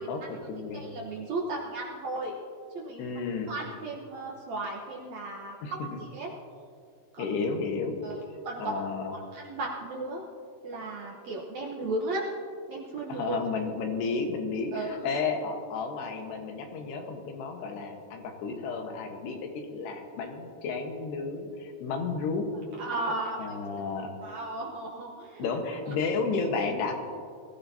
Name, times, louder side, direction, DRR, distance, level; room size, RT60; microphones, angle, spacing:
voice 1, 0.1-0.9 3.0-3.5 5.6-6.0 7.2-8.0 8.3-9.1 13.1-22.5 23.4-24.1 25.4-26.9, left 4 dB, 85° left, 3 dB, 3.5 m, -32 dB
voice 2, 0.8-2.4 2.7-3.0 3.5-6.3 7.1-7.2 8.0-8.7 9.1-10.2 10.6-12.2 12.7-13.4 14.7-15.0 22.8-23.6 24.2-25.5, right 2 dB, 65° right, -2 dB, 1.8 m, -35 dB
22.5 x 15.5 x 2.8 m, 2.3 s
omnidirectional pair, 4.6 m